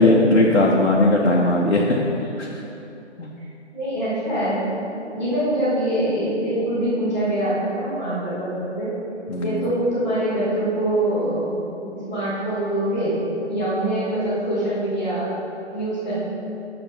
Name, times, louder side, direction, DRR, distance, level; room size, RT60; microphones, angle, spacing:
voice 1, 0.0-2.1 2.4-2.6 3.2-3.3 9.3-9.6, left 2 dB, 80° left, -2 dB, 1.0 m, -18 dB
voice 2, 3.7-4.6 5.0-8.9 9.4-13.2 13.5-15.3 15.7-16.2, right 1 dB, 5° right, -17 dB, 0.6 m, -24 dB
5.9 x 5.9 x 5.5 m, 3.0 s
figure-of-eight pair, 145°, 36 cm